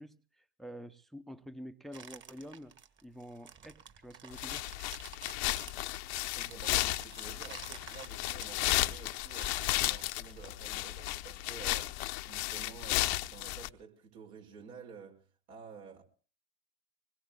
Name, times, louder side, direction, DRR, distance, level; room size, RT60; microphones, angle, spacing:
voice 1, 0.0-4.7, equal, ahead, 0.8 m, -48 dB
sound 1, 1.9-11.1, right 6 dB, 35° right, 2.2 m, -51 dB
sound 2, 4.3-13.7, left 17 dB, 65° left, 1.0 m, -34 dB
voice 2, 6.3-9.5 9.9-11.9 12.2-16.0, right 6 dB, 75° right, 5.5 m, -51 dB
25.0 x 21.5 x 2.3 m
hypercardioid pair, 85°, 35 cm